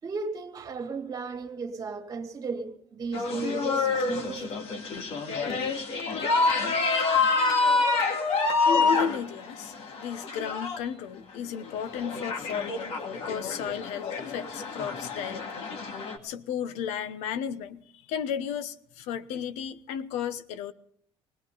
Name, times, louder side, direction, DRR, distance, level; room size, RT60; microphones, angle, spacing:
voice 1, 0.0-4.7 6.4-6.7 6.9-7.1, right 4 dB, 35° right, 2.3 m, -35 dB
sound 1, 3.1-10.8 11.6-16.2, left 4 dB, 60° left, 2.1 m, -27 dB
voice 2, 8.7-9.7 10.0-15.4 16.2-17.8 18.1-20.7, left 8 dB, 90° left, 0.9 m, -33 dB
19.5 x 18.0 x 3.9 m
cardioid pair, 130°, 11 cm